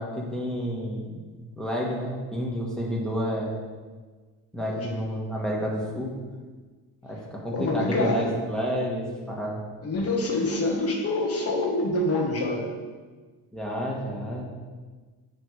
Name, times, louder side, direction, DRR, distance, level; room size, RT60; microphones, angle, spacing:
voice 1, 0.0-3.6 4.5-6.2 7.0-9.6 13.5-14.4, equal, ahead, -3 dB, 1.5 m, -30 dB
voice 2, 4.7-5.0 7.5-8.3 9.8-12.7, left 2 dB, 35° left, 0 dB, 1.6 m, -26 dB
9.2 x 3.5 x 4.8 m, 1.4 s
cardioid pair, 110°, 40 cm